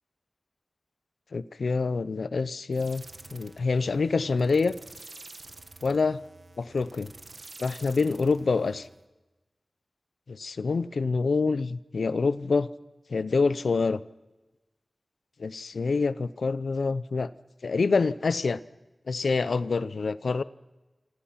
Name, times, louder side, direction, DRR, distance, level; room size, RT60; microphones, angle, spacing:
voice 1, 1.3-3.0 3.3-4.8 5.8-6.2 6.6-7.1 7.6-8.9 10.3-12.7 13.1-14.0 15.4-17.3 17.6-18.6 19.1-20.4, left 4 dB, 85° left, 15 dB, 0.7 m, -26 dB
sound 1, 2.7-9.0, right 2 dB, 55° right, 1.8 m, -49 dB
27.0 x 26.5 x 5.9 m, 1.1 s
wide cardioid pair, 65°, 0 cm